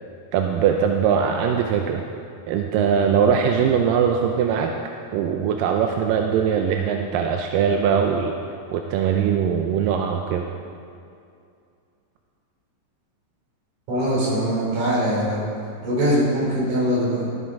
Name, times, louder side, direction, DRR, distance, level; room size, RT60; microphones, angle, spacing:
voice 1, 0.3-2.0 2.5-4.7 5.1-8.3 8.7-10.5, right 7 dB, 85° right, 3 dB, 2.2 m, -21 dB
voice 2, 13.9-15.5 15.8-17.3, equal, 60° right, -7 dB, 4.3 m, -22 dB
13.5 x 8.3 x 3.6 m, 2.4 s
omnidirectional pair, 3.9 m